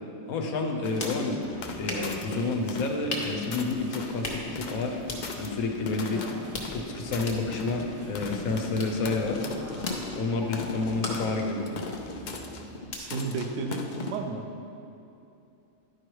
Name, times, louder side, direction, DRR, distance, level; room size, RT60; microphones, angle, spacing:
voice 1, 0.3-1.4 1.8-5.0 5.3-6.2 6.7-9.4 10.1-11.7, left 3 dB, 90° left, 3 dB, 1.3 m, -29 dB
sound 1, 0.5-14.3, left 1 dB, 40° left, 1.3 m, -42 dB
sound 2, 0.8-14.2, left 4 dB, 55° left, 0.5 m, -39 dB
sound 3, 1.4-12.8, right 1 dB, 25° right, 0.3 m, -43 dB
voice 2, 12.8-14.4, right 4 dB, 65° right, 4 dB, 1.0 m, -33 dB
10.5 x 4.9 x 4.6 m, 2.8 s
omnidirectional pair, 1.4 m